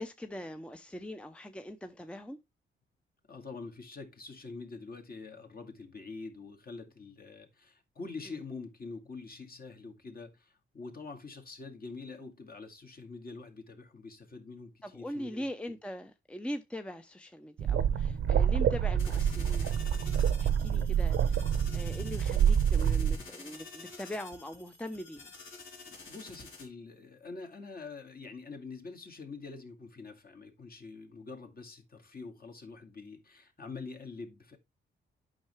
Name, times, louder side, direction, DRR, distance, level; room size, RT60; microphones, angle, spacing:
voice 1, 0.0-2.4 8.3-8.4 14.8-19.8 20.4-21.4 21.7-25.3, left 1 dB, 5° left, 0.7 m, -41 dB
voice 2, 3.3-15.5 20.7-20.9 25.9-34.6, left 4 dB, 45° left, 2.1 m, -45 dB
sound 1, 17.6-23.2, right 8 dB, 80° right, 0.9 m, -27 dB
sound 2, 19.0-26.6, left 3 dB, 75° left, 3.0 m, -49 dB
8.7 x 5.7 x 3.2 m
cardioid pair, 80°, 21 cm